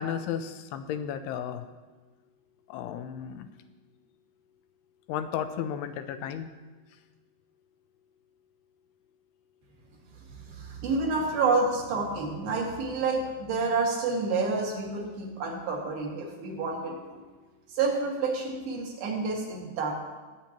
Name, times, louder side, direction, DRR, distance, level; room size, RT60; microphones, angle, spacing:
voice 1, 0.0-1.6 2.7-3.5 5.1-6.5, left 8 dB, 85° left, 9 dB, 2.5 m, -33 dB
voice 2, 10.5-17.2 17.7-19.9, right 4 dB, 65° right, -2 dB, 3.6 m, -29 dB
21.0 x 8.5 x 3.0 m, 1.3 s
omnidirectional pair, 4.7 m